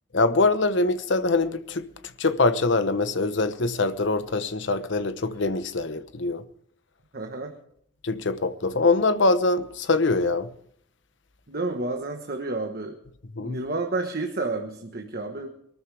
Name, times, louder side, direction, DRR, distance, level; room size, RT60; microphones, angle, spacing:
voice 1, 0.1-1.9 2.2-6.4 8.0-10.5 13.4-13.6, left 3 dB, 65° left, 0.9 m, -23 dB
voice 2, 7.1-7.5 11.5-13.0 13.4-15.5, right 2 dB, 50° right, 1.3 m, -30 dB
22.5 x 13.5 x 3.4 m
head